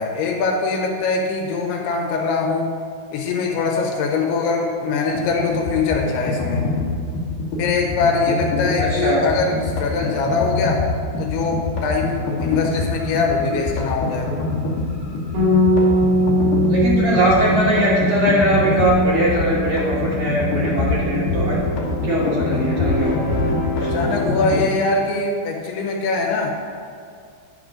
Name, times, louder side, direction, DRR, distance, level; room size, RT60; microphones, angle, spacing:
voice 1, 0.0-2.7 3.1-6.7 7.6-10.9 11.2-14.3 23.8-26.5, left 4 dB, 85° left, 0 dB, 2.8 m, -22 dB
sound 1, 5.2-24.7, left 2 dB, 65° left, 2.5 m, -24 dB
voice 2, 8.8-9.2 16.7-21.6 22.0-23.3 23.8-23.9, right 1 dB, 75° right, -8 dB, 1.3 m, -20 dB
Bass guitar, 15.3-21.6, left 1 dB, 55° right, 3.6 m, -21 dB
10.0 x 3.8 x 6.1 m, 2.2 s
omnidirectional pair, 4.6 m